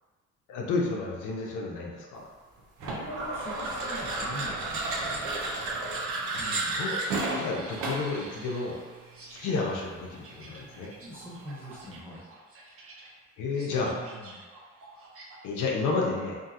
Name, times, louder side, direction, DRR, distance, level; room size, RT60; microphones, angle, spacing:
voice 1, 0.5-2.2 6.7-8.8 9.4-10.9 13.4-14.0 15.4-16.4, left 3 dB, 85° left, -2 dB, 0.6 m, -31 dB
voice 2, 2.8-5.3 6.4-6.9 11.0-12.2 13.8-14.4, equal, 10° right, -8 dB, 1.0 m, -43 dB
sound 1, 2.8-8.2, right 2 dB, 90° right, 0.6 m, -32 dB
sound 2, 5.7-15.5, right 2 dB, 50° right, 0.6 m, -49 dB
2.7 x 2.6 x 2.4 m, 1.4 s
cardioid pair, 90°, 30 cm